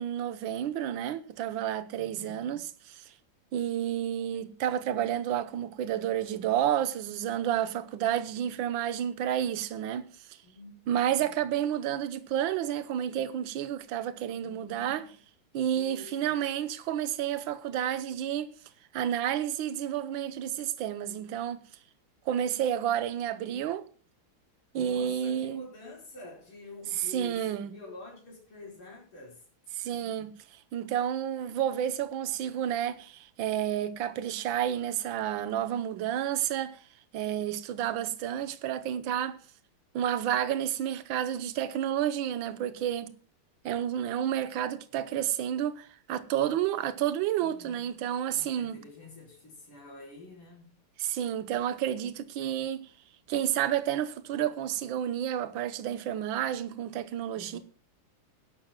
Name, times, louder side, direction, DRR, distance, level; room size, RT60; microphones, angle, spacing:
voice 1, 0.0-3.1 3.5-10.0 10.3-10.4 10.9-15.0 15.5-18.5 18.9-21.6 22.3-23.8 24.7-25.6 27.1-27.7 29.7-30.3 30.7-36.8 37.1-39.4 39.9-43.1 43.6-48.8 51.0-52.9 53.3-57.6, right 10 dB, 70° right, 1.6 m, -30 dB
voice 2, 1.9-2.5 10.4-11.4 14.4-15.1 15.7-16.4 23.5-23.6 24.7-29.5 29.9-30.2 47.4-47.9 48.3-50.8 57.3-57.6, left 2 dB, 85° left, 5.8 m, -48 dB
21.5 x 11.5 x 2.2 m
omnidirectional pair, 2.3 m